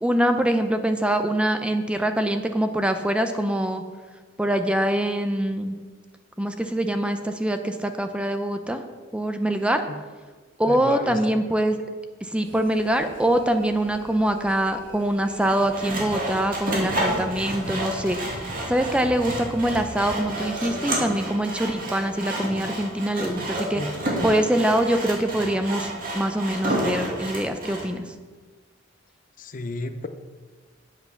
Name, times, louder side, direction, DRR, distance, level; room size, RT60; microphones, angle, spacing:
voice 1, 0.0-3.8 4.4-5.8 6.4-8.8 9.1-9.9 10.6-11.8 12.3-23.8 24.2-28.0, right 1 dB, 5° right, 7 dB, 0.5 m, -24 dB
voice 2, 10.7-11.2 23.7-23.9 29.4-30.1, left 2 dB, 45° left, 9 dB, 0.6 m, -32 dB
sound 1, 12.4-20.2, equal, 75° right, 1.9 m, -42 dB
Sawing, 15.4-27.9, right 1 dB, 45° right, 2.2 m, -30 dB
8.2 x 7.7 x 5.8 m, 1.4 s
head